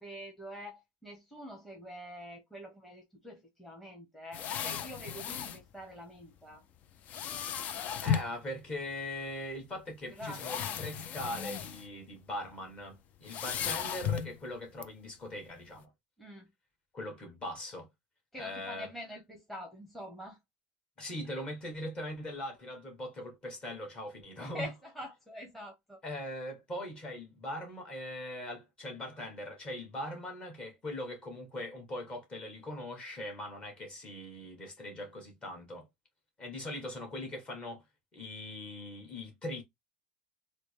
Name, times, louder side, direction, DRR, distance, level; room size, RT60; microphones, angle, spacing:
voice 1, 0.0-6.6 10.0-10.7 16.2-16.5 18.3-20.4 24.4-26.0, equal, 5° left, 1.1 m, -45 dB
sound 1, 4.3-5.6 7.1-8.4 9.3-9.4 10.1-11.9 12.2-12.4 13.2-14.4 14.8-14.9, left 9 dB, 45° left, 0.4 m, -35 dB
voice 2, 8.0-15.9 16.9-17.9 18.4-18.9 21.0-24.7 26.0-35.9 36.4-37.8 38.1-39.6, left 1 dB, 25° left, 1.6 m, -41 dB
3.9 x 2.1 x 3.3 m
supercardioid pair, 115°, 4 cm